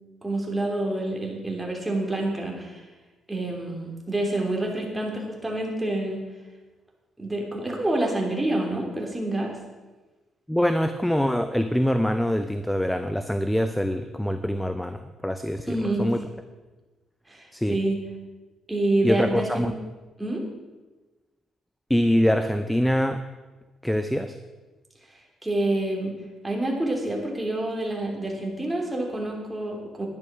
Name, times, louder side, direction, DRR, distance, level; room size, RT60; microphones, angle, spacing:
voice 1, 0.2-2.8 3.3-6.2 7.2-9.5 15.7-16.0 17.3-18.0 18.7-19.7 20.2-20.4 25.4-26.1 26.4-30.1, right 1 dB, 10° right, 0 dB, 3.4 m, -27 dB
voice 2, 10.5-16.2 17.5-17.8 19.0-19.7 21.9-23.2 23.8-24.4, equal, 5° left, 10 dB, 0.6 m, -24 dB
11.0 x 10.5 x 6.1 m, 1.2 s
cardioid pair, 90°, 0 cm